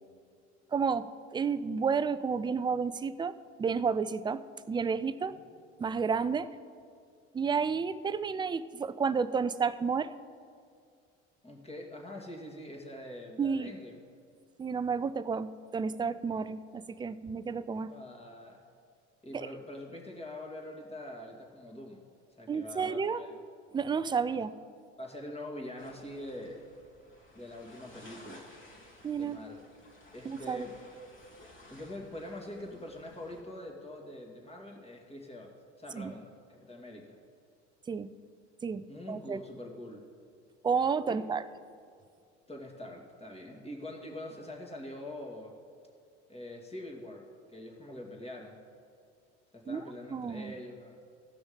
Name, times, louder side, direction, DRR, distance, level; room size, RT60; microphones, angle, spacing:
voice 1, 0.7-1.1 1.3-3.3 3.6-4.4 4.7-5.3 5.8-6.5 7.3-10.1 13.4-13.7 14.6-17.9 19.3-19.5 22.5-23.2 23.7-24.5 29.0-29.4 30.3-30.6 35.9-36.1 37.9-38.1 38.6-38.8 39.1-39.4 40.6-41.4 49.7-49.8 50.1-50.5, right 5 dB, 15° right, 14 dB, 0.3 m, -31 dB
voice 2, 11.4-14.0 17.9-18.6 19.2-22.0 22.4-23.3 25.0-26.7 27.3-28.4 29.2-29.6 30.1-30.8 31.7-35.5 35.8-37.1 38.9-40.0 41.1-41.2 42.5-45.5 46.3-48.6 49.5-51.0, left 1 dB, 15° left, 0 dB, 2.3 m, -44 dB
sound 1, 25.8-33.4, left 1 dB, 35° left, 2.4 m, -55 dB
16.5 x 6.1 x 5.1 m, 2.2 s
hypercardioid pair, 70°, 36 cm